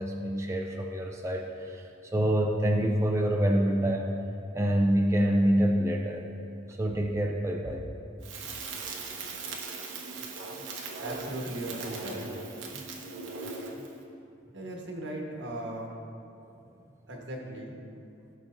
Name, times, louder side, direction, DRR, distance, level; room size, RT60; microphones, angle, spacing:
voice 1, 0.0-4.1 4.5-6.2 6.7-7.8 12.7-12.8 16.4-16.5, right 1 dB, 15° right, 0 dB, 0.5 m, -26 dB
Crackle, 8.2-13.9, right 4 dB, 85° right, 1.0 m, -39 dB
voice 2, 11.0-12.3 14.5-15.9 17.1-17.8, right 1 dB, 65° right, -1 dB, 1.3 m, -37 dB
15.0 x 6.2 x 2.6 m, 2.6 s
head